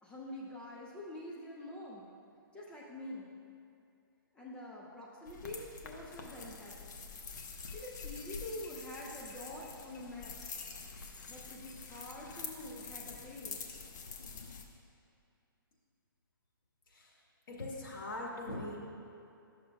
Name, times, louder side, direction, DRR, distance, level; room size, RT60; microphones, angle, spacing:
voice 1, 0.0-2.1 2.5-3.3 4.3-6.9 7.7-10.4 11.3-13.6, left 1 dB, 10° left, -5 dB, 0.6 m, -46 dB
sound 1, 5.3-14.6, left 5 dB, 50° left, 0.8 m, -46 dB
voice 2, 17.5-18.8, left 2 dB, 70° left, -3 dB, 1.7 m, -41 dB
11.5 x 6.5 x 2.3 m, 2.6 s
hypercardioid pair, 140°, 12 cm